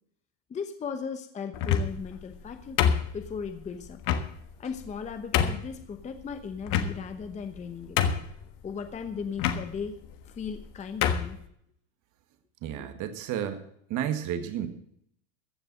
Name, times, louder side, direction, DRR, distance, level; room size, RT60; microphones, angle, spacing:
voice 1, 0.5-2.8 3.1-4.0 4.6-8.0 8.6-10.0 10.2-11.4 12.8-12.9, left 6 dB, 15° left, 8 dB, 0.9 m, -37 dB
sound 1, 1.5-2.1 2.8-3.5 4.0-4.3 4.9-5.0 5.3-5.7 6.7-7.2 7.6-7.7 8.0-8.4 9.4-9.6 10.5-10.6 11.0-11.3, left 8 dB, 45° left, 1.5 m, -25 dB
voice 2, 12.6-13.6 13.9-14.7, right 10 dB, 40° right, 8 dB, 1.8 m, -31 dB
15.0 x 6.8 x 7.7 m, 0.69 s
supercardioid pair, 140°, 45 cm